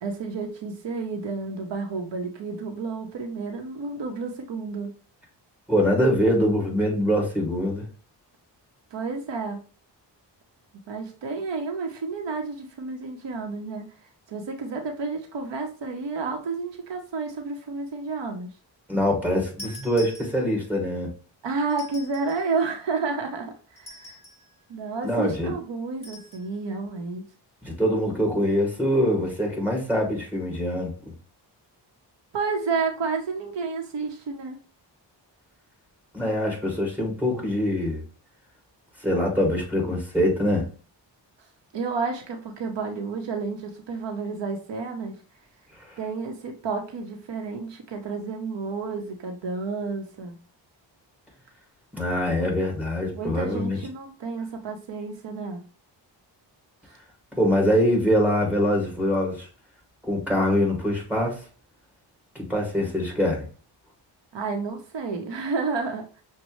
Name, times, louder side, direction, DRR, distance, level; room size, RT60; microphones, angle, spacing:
voice 1, 0.0-4.9 8.9-9.6 10.9-13.9 14.3-18.5 21.4-24.2 24.7-27.2 32.3-34.6 41.7-45.2 46.0-50.4 53.1-55.6 64.3-66.2, right 4 dB, 70° right, 0.9 m, -31 dB
voice 2, 5.7-7.9 18.9-21.1 25.0-25.5 27.6-30.9 36.1-38.0 39.0-40.7 45.8-46.0 51.9-53.8 57.4-59.5 60.0-61.4 62.3-63.4, equal, 5° right, 2.1 m, -24 dB
sound 1, 19.6-20.7 21.7-22.5 23.8-24.5 26.0-26.5, left 1 dB, 15° left, 2.4 m, -44 dB
6.2 x 2.2 x 3.1 m
cardioid pair, 90°, 44 cm